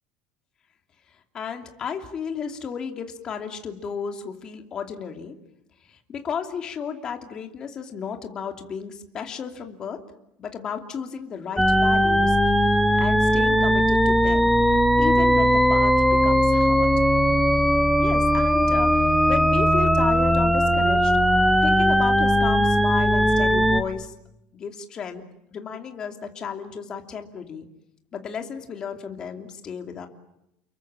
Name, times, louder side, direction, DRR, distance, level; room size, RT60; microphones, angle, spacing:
voice 1, 1.1-5.3 5.8-10.0 10.4-12.5 13.0-14.5 15.0-16.9 18.0-21.2 21.6-24.1 24.5-25.2 25.5-27.7 28.1-30.1, left 6 dB, 25° left, 5 dB, 2.8 m, -33 dB
sound 1, 11.6-23.8, equal, ahead, 1.2 m, -19 dB
30.0 x 22.5 x 8.9 m, 0.82 s
cardioid pair, 175°, 3 cm